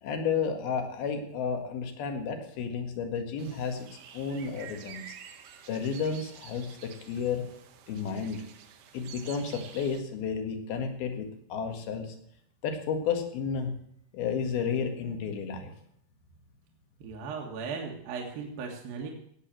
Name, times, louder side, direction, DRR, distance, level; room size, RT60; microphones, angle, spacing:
voice 1, 0.0-3.9 4.1-5.2 5.7-7.4 7.9-8.4 8.9-12.2 12.6-13.7 14.1-15.7, left 6 dB, 70° left, 5 dB, 3.7 m, -32 dB
sound 1, 3.4-10.0, right 8 dB, 80° right, 3.5 m, -49 dB
voice 2, 17.0-19.1, right 5 dB, 65° right, 0 dB, 3.5 m, -37 dB
18.0 x 8.3 x 7.7 m, 0.71 s
omnidirectional pair, 4.7 m